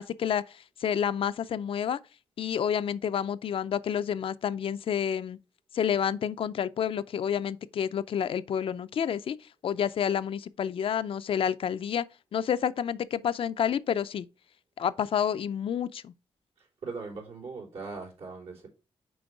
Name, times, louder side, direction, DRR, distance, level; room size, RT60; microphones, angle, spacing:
voice 1, 0.0-2.0 2.4-5.4 5.7-12.1 12.3-14.3 14.8-16.1, left 8 dB, 65° left, 0.4 m, -29 dB
voice 2, 16.6-18.7, right 4 dB, 80° right, 3.4 m, -40 dB
6.2 x 4.5 x 4.7 m
cardioid pair, 95°, 10 cm